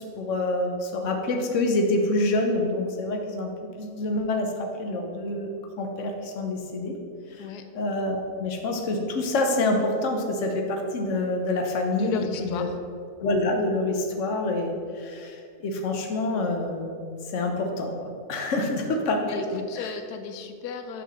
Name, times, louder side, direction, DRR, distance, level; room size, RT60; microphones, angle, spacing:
voice 1, 0.0-3.5 3.8-5.5 5.8-6.9 7.3-7.5 7.7-12.7 13.2-17.0 17.3-19.9, left 2 dB, 55° left, 3 dB, 1.2 m, -27 dB
voice 2, 11.9-12.8 18.6-18.7 19.2-21.0, left 6 dB, 85° left, 7 dB, 1.1 m, -35 dB
6.4 x 4.8 x 6.4 m, 2.3 s
omnidirectional pair, 1.6 m